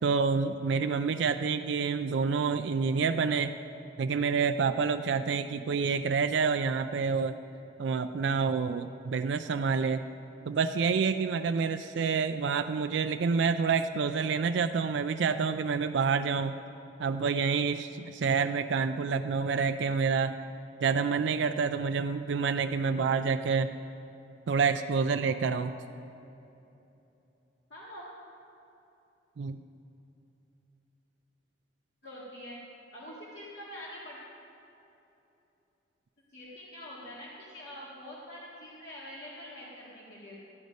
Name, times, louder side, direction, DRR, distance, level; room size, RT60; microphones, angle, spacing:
voice 1, 0.0-3.5 4.0-7.4 7.8-10.0 10.5-16.6 17.0-20.4 20.8-23.7 24.5-25.7 29.4-29.6, right 5 dB, 75° right, 8 dB, 0.4 m, -28 dB
voice 2, 27.7-28.0 32.0-32.6 32.9-34.2 36.3-40.4, left 1 dB, 70° left, -7 dB, 1.9 m, -45 dB
14.0 x 9.4 x 5.2 m, 2.9 s
head